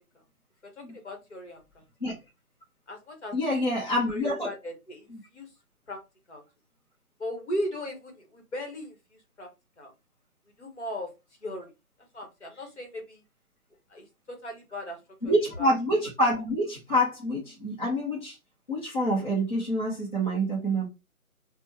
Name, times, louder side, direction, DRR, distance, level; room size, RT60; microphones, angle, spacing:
voice 1, 0.8-1.8 2.9-3.6 4.1-5.5 5.9-6.0 6.3-6.4 7.2-9.5 9.8-9.9 10.6-11.1 11.4-11.7 12.1-13.2 13.9-15.0 15.2-15.8, equal, 50° left, 1.1 m, -37 dB
voice 2, 3.3-4.5 15.2-18.4 18.7-20.9, equal, 35° left, 0.7 m, -27 dB
2.9 x 2.1 x 2.8 m
hypercardioid pair, 175°, 44 cm